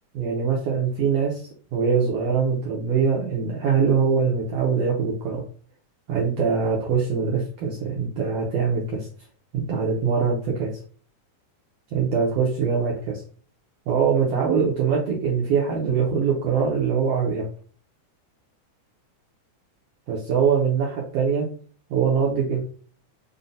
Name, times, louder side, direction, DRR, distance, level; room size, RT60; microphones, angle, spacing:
voice 1, 0.1-5.4 6.1-9.1 9.5-10.7 11.9-13.2 13.9-17.4 20.1-21.5 21.9-22.6, right 6 dB, 75° right, -2 dB, 1.5 m, -23 dB
5.3 x 2.2 x 2.6 m, 0.42 s
omnidirectional pair, 3.5 m